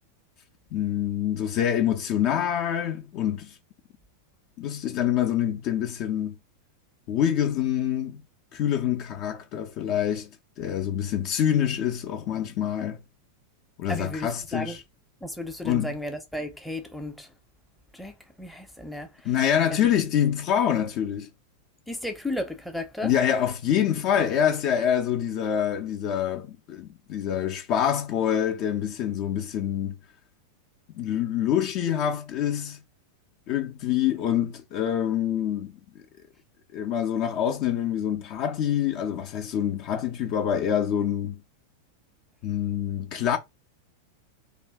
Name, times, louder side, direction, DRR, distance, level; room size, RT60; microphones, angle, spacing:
voice 1, 0.7-3.5 4.6-6.3 7.1-8.2 8.5-10.3 10.6-13.0 13.8-14.8 15.6-15.9 19.2-21.3 23.0-30.0 30.9-32.8 33.5-35.7 36.7-41.4 42.4-43.4, left 9 dB, 40° left, 0.5 m, -26 dB
voice 2, 13.9-14.8 15.2-17.3 17.9-19.1 19.7-19.9 21.9-23.1, left 1 dB, ahead, 0.6 m, -34 dB
2.5 x 2.2 x 3.5 m
figure-of-eight pair, 90°, 0 cm